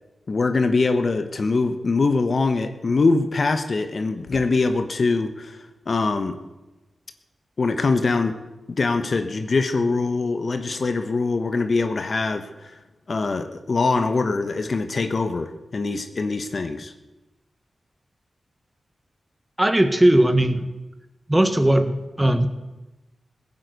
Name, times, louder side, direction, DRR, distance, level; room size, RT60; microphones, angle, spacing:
voice 1, 0.3-6.4 7.6-8.3 8.8-12.8 13.1-16.9, left 3 dB, 60° left, 8 dB, 1.2 m, -23 dB
voice 2, 19.6-20.6 21.3-22.5, right 1 dB, 15° right, 9 dB, 1.6 m, -18 dB
16.0 x 9.7 x 8.2 m, 1.1 s
cardioid pair, 60°, 0 cm